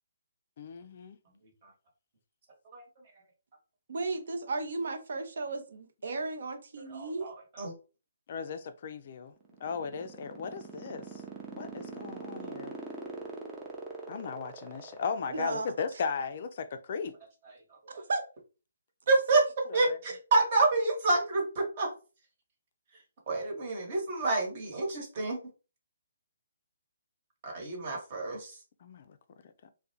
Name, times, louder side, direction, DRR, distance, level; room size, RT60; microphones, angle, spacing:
voice 1, 0.6-1.2 8.3-9.3 9.6-11.2 11.5-12.8 14.1-17.1 19.7-20.0 28.8-29.2 29.6-29.7, left 5 dB, 50° left, 0.3 m, -36 dB
voice 2, 3.9-7.3 15.3-15.7 17.9-18.2, right 3 dB, 65° right, 0.6 m, -34 dB
voice 3, 6.9-7.7 12.4-12.5 19.1-19.4 19.7-21.9 23.3-25.4 27.4-28.5, right 3 dB, 40° right, 1.1 m, -28 dB
sound 1, 9.4-16.0, right 3 dB, 15° right, 0.5 m, -42 dB
2.3 x 2.1 x 2.8 m
hypercardioid pair, 155°, 0 cm